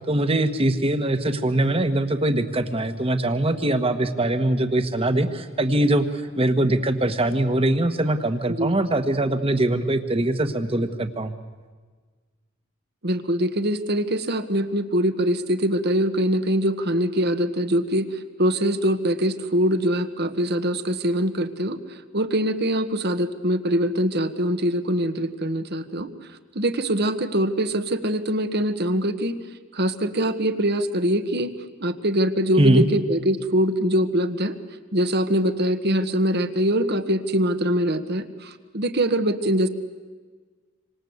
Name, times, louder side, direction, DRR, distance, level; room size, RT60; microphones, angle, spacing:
voice 1, 0.1-6.0 6.4-11.3 32.6-32.9, right 1 dB, 30° right, 9 dB, 1.6 m, -22 dB
voice 2, 8.5-8.8 13.0-26.1 26.5-29.4 29.7-31.5 31.8-34.6 34.9-39.7, equal, 50° right, 10 dB, 1.6 m, -23 dB
27.0 x 26.0 x 8.1 m, 1.4 s
head